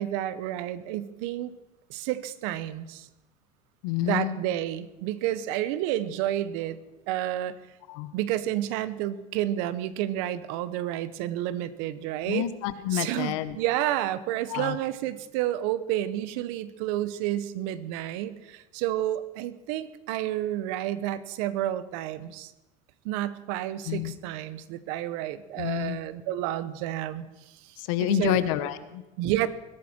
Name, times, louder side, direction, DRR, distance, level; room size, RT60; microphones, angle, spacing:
voice 1, 0.0-1.5 1.9-3.1 4.0-6.8 7.1-7.5 8.1-12.5 12.9-22.5 23.0-28.4 29.2-29.5, right 13 dB, 80° right, 15 dB, 1.0 m, -30 dB
voice 2, 3.8-4.3 7.9-8.1 12.3-13.6 14.5-14.8 23.8-24.1 25.6-26.0 27.8-29.0, left 13 dB, 90° left, 13 dB, 1.1 m, -28 dB
20.5 x 12.5 x 4.4 m, 1.0 s
cardioid pair, 130°, 16 cm